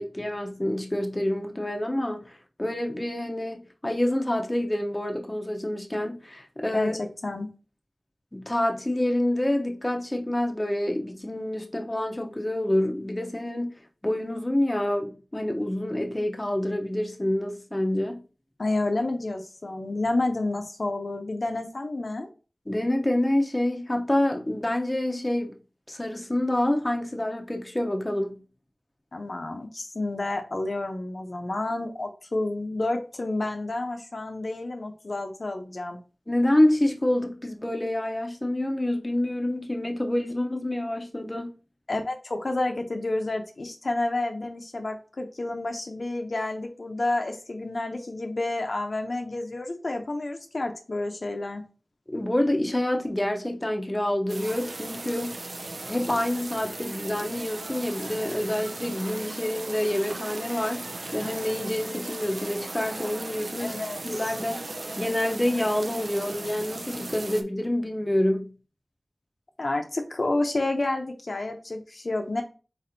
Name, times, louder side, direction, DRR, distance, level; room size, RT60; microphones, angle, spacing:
voice 1, 0.0-2.3 2.6-7.0 8.3-13.7 14.0-18.2 22.7-25.6 25.9-28.3 36.3-41.5 52.1-55.3 55.9-63.7 64.0-64.6 65.0-68.5, left 1 dB, 20° left, 0.7 m, -27 dB
voice 2, 6.7-7.5 18.6-22.3 29.1-36.0 41.9-51.6 63.6-64.0 69.6-72.4, left 2 dB, 60° left, 0.6 m, -30 dB
sound 1, 54.3-67.4, right 2 dB, 70° right, 0.5 m, -37 dB
4.2 x 4.1 x 2.6 m
wide cardioid pair, 70°, 0 cm